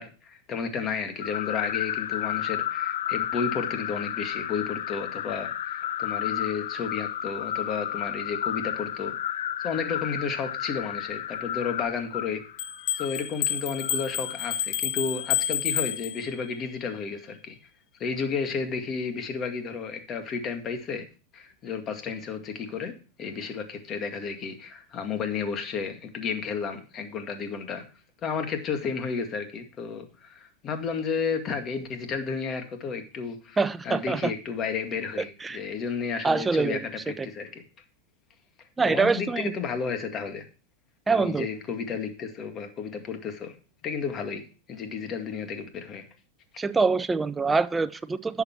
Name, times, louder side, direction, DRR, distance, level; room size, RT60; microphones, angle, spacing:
voice 1, 0.0-9.1 9.6-12.4 13.0-17.6 18.0-21.0 21.3-22.9 23.2-27.8 28.2-33.6 33.8-37.6 38.8-40.5 41.1-43.6 43.8-44.4 44.7-46.1, left 5 dB, 35° left, 6 dB, 2.0 m, -32 dB
sound 1, 1.2-14.6, left 11 dB, 80° left, 0.6 m, -32 dB
sound 2, 12.6-16.6, left 10 dB, 50° left, 1.0 m, -29 dB
voice 2, 33.6-34.3 35.4-35.6 36.2-36.8 37.2-37.3 38.8-39.5 41.1-41.5 46.6-48.4, right 4 dB, 15° right, 15 dB, 0.6 m, -25 dB
10.5 x 6.9 x 4.5 m, 0.36 s
hypercardioid pair, 115°, 0 cm